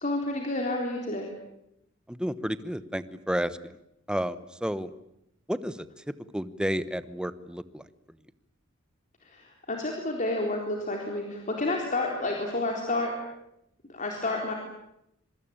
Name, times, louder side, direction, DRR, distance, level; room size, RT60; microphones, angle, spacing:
voice 1, 0.0-1.3 9.2-13.1 13.9-14.5, left 2 dB, 40° left, 1 dB, 3.9 m, -30 dB
voice 2, 2.1-3.7 4.1-4.9 5.5-7.8, equal, 5° right, 14 dB, 1.0 m, -31 dB
26.0 x 24.5 x 8.9 m, 0.82 s
head